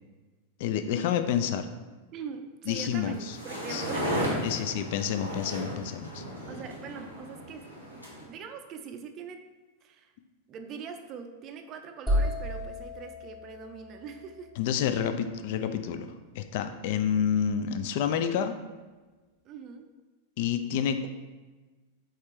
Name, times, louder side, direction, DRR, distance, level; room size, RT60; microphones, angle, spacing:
voice 1, 0.6-1.7 2.7-3.4 3.7-3.9 4.4-6.2 14.6-18.5 20.4-21.1, left 8 dB, 50° left, 9 dB, 0.3 m, -29 dB
voice 2, 2.1-4.5 6.5-9.4 9.8-10.1 10.5-14.5 19.4-19.9, right 6 dB, 35° right, 7 dB, 0.4 m, -42 dB
sound 1, 2.8-8.2, equal, 85° left, 1.0 m, -35 dB
sound 2, 12.1-15.9, equal, 5° left, 1.3 m, -33 dB
4.3 x 3.6 x 3.2 m, 1.2 s
figure-of-eight pair, 90°, 0 cm